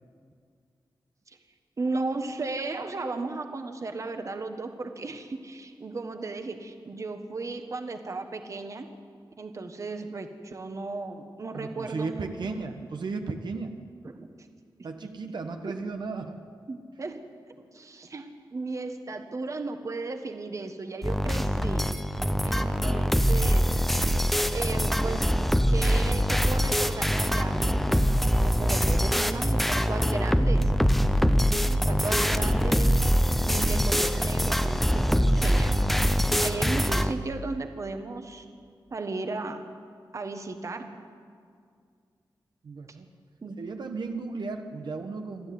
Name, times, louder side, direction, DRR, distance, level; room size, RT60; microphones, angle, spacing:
voice 1, 1.8-8.9 9.4-12.6 14.0-14.3 15.6-15.7 16.7-17.2 17.7-21.8 22.4-23.7 24.5-25.3 25.7-30.7 31.4-33.0 33.4-38.4 38.9-39.6 40.1-40.9 43.4-43.6, right 3 dB, 40° right, 6 dB, 1.5 m, -35 dB
voice 2, 11.5-13.8 14.8-16.4 42.6-43.1 43.6-45.5, right 4 dB, 70° right, 5 dB, 1.4 m, -35 dB
sound 1, 21.0-37.1, equal, ahead, 0.9 m, -24 dB
28.0 x 13.0 x 9.5 m, 2.2 s
wide cardioid pair, 140°, 8 cm